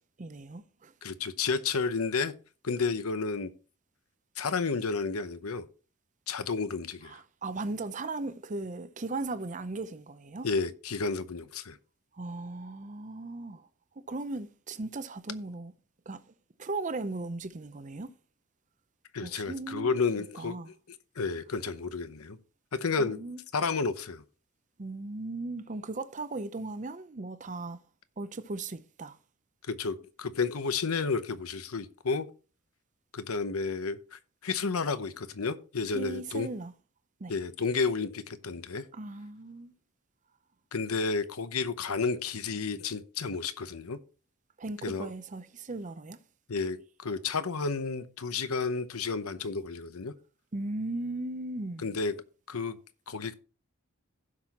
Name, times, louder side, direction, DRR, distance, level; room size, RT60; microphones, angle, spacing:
voice 1, 0.2-0.9 7.0-10.5 12.1-13.7 14.1-15.7 16.1-16.2 16.6-18.1 19.2-19.9 20.4-20.7 23.0-23.4 24.8-27.8 28.2-29.2 35.9-36.7 37.2-37.3 38.9-39.7 44.6-46.2 50.5-52.0, right 2 dB, 35° right, 0.6 m, -37 dB
voice 2, 1.0-2.3 2.6-3.5 4.4-5.6 6.3-7.1 10.4-11.8 19.1-20.6 21.2-22.4 22.7-23.2 23.5-24.2 29.7-32.3 33.1-36.5 37.3-38.9 40.7-44.0 44.8-45.1 46.5-50.1 51.8-52.2 52.5-52.8 53.1-53.3, left 4 dB, 90° left, 0.8 m, -31 dB
16.0 x 6.1 x 2.9 m
head